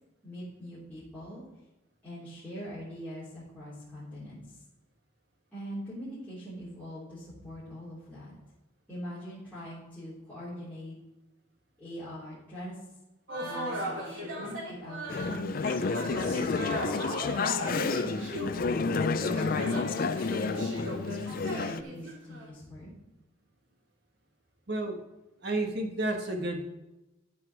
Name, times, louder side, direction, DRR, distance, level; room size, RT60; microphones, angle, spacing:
voice 1, 0.2-1.4 2.0-4.4 5.5-8.3 8.9-11.0 11.8-12.8 13.4-16.9 17.7-22.9, equal, 10° left, -12 dB, 3.6 m, -42 dB
sound 1, 13.3-22.5, equal, 75° right, 3.1 m, -37 dB
Conversation / Chatter, 15.1-21.8, left 4 dB, 45° left, 0.4 m, -30 dB
voice 2, 25.4-26.6, right 2 dB, 55° right, 3 dB, 1.6 m, -31 dB
13.0 x 4.8 x 6.0 m, 0.99 s
head